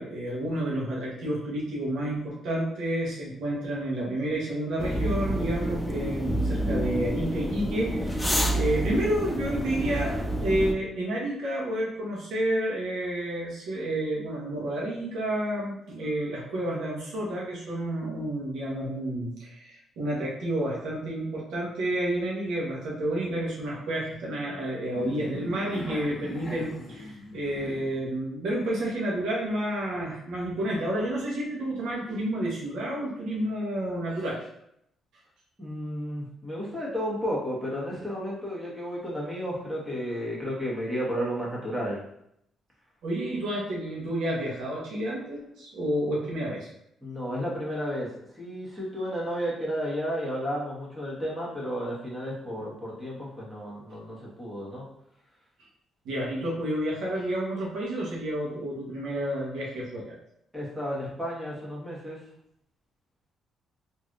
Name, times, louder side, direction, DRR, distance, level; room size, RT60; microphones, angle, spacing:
voice 1, 0.0-34.4 43.0-46.7 52.6-52.7 56.0-60.0, right 1 dB, 80° right, -4 dB, 0.9 m, -30 dB
sound 1, 4.8-10.7, equal, 5° left, 0.4 m, -28 dB
sound 2, 24.9-28.0, left 1 dB, 30° left, 1.0 m, -39 dB
voice 2, 35.6-42.0 47.0-48.1 48.3-54.8 60.5-62.2, equal, 10° right, -5 dB, 1.2 m, -32 dB
3.3 x 2.7 x 2.4 m, 0.75 s
cardioid pair, 90°, 0 cm